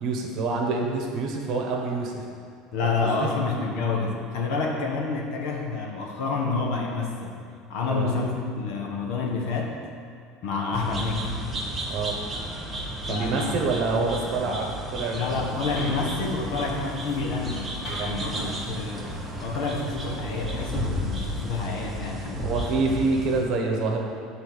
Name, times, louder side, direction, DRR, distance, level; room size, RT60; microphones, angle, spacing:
voice 1, 0.0-2.2 2.8-3.3 7.8-8.1 11.9-12.2 13.1-16.1 17.9-18.6 22.4-24.0, right 3 dB, 45° right, 1 dB, 1.2 m, -27 dB
voice 2, 2.7-7.4 7.7-9.8 10.4-11.3 13.1-13.5 13.9-14.0 14.4-14.6 15.1-19.1 19.4-22.5, left 4 dB, 60° left, 0 dB, 1.4 m, -29 dB
sound 1, 10.7-23.4, equal, 10° right, 1.1 m, -33 dB
sound 2, 15.1-22.1, equal, 40° left, 2.2 m, -41 dB
8.3 x 4.3 x 7.2 m, 2.2 s
cardioid pair, 165°, 0 cm